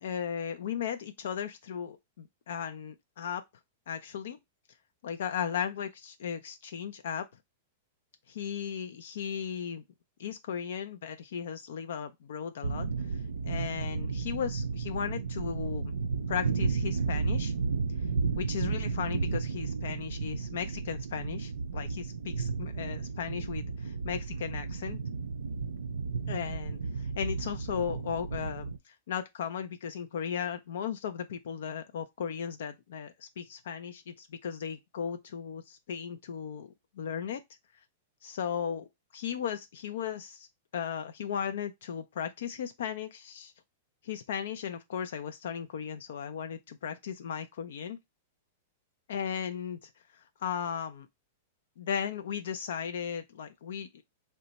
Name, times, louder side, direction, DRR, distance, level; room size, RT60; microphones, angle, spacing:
voice 1, 0.0-3.4 3.9-4.4 5.0-7.3 8.3-9.8 10.2-15.9 16.3-17.5 18.4-25.0 26.3-37.4 38.2-38.9 39.1-40.5 40.7-43.5 44.0-48.0 49.1-51.1 51.8-53.9, left 8 dB, 75° left, 0.4 m, -36 dB
sound 1, 12.6-28.8, right 4 dB, 90° right, 0.4 m, -33 dB
2.8 x 2.2 x 4.0 m
hypercardioid pair, 115°, 0 cm